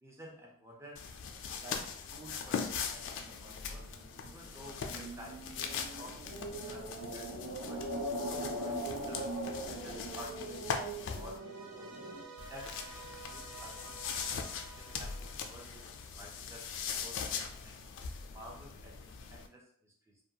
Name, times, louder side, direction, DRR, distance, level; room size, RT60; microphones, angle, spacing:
voice 1, 0.0-1.0 1.4-3.9 4.2-6.4 6.6-6.9 7.1-7.9 8.3-11.4 11.8-12.1 12.5-15.8 16.1-16.6 17.0-17.8 18.3-20.2, equal, 15° right, -1 dB, 0.4 m, -52 dB
sound 1, 1.0-11.4 12.4-19.5, left 6 dB, 60° left, 0.3 m, -41 dB
sound 2, 3.0-12.2, right 1 dB, 65° right, 1.0 m, -41 dB
sound 3, 11.2-16.5, right 4 dB, 90° right, 0.9 m, -52 dB
2.4 x 2.2 x 2.7 m, 0.63 s
head